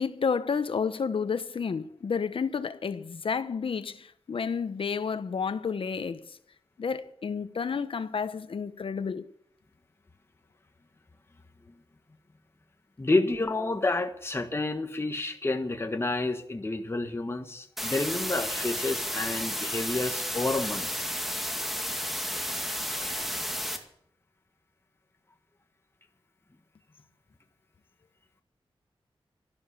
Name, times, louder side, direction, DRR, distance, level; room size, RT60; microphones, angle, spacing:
voice 1, 0.0-6.4 6.8-9.3, left 6 dB, 65° left, 1.0 m, -31 dB
voice 2, 13.0-21.1, left 2 dB, 25° left, 1.4 m, -29 dB
sound 1, 17.8-23.8, equal, ahead, 2.2 m, -32 dB
12.5 x 12.0 x 7.3 m
wide cardioid pair, 85°, 10 cm